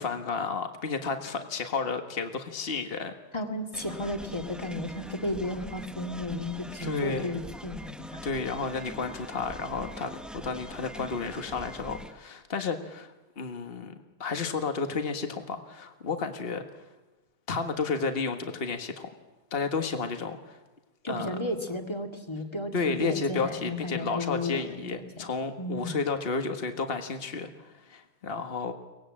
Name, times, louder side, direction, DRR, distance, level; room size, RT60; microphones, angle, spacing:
voice 1, 0.0-3.1 6.8-7.4 8.2-13.9 14.2-16.6 17.5-19.1 19.5-20.6 21.1-21.3 22.7-28.7, left 4 dB, 40° left, 6 dB, 1.7 m, -32 dB
voice 2, 3.3-8.2 21.0-22.7 23.0-24.8 25.6-26.0, left 1 dB, 15° left, 4 dB, 2.0 m, -33 dB
sound 1, 3.7-12.1, equal, ahead, 0.4 m, -43 dB
23.5 x 19.0 x 8.8 m, 1.1 s
omnidirectional pair, 1.7 m